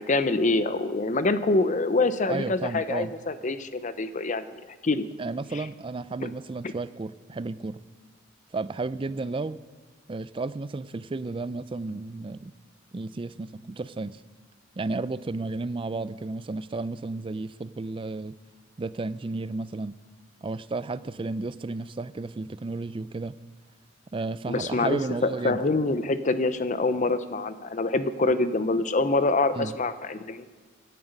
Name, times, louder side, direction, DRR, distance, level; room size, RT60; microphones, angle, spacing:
voice 1, 0.0-4.6 4.8-5.0 5.5-5.6 6.2-6.3 24.5-30.5, left 2 dB, 40° left, 12 dB, 0.7 m, -25 dB
voice 2, 2.3-3.1 5.2-7.8 8.5-9.6 10.1-12.5 12.9-14.2 14.8-18.3 18.8-19.9 20.4-23.4 24.1-25.6 29.5-29.7, right 3 dB, 25° right, 16 dB, 0.4 m, -33 dB
17.0 x 11.0 x 5.3 m, 1.4 s
head